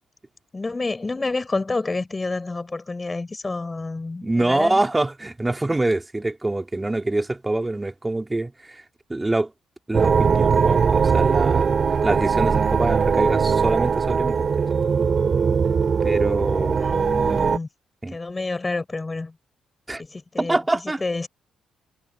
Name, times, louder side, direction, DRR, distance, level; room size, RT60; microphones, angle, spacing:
voice 1, 0.5-4.8 16.8-17.7 18.1-19.4 20.0-20.6 21.0-21.3, left 3 dB, 20° left, 5.6 m, -29 dB
voice 2, 4.2-8.8 9.1-9.5 9.9-11.8 12.0-14.5 16.0-17.1 18.0-18.2 19.9-20.0 20.4-21.0, right 2 dB, 15° right, 3.3 m, -25 dB
sound 1, 9.9-17.6, right 6 dB, 45° right, 2.9 m, -20 dB
cardioid pair, 90°, 0 cm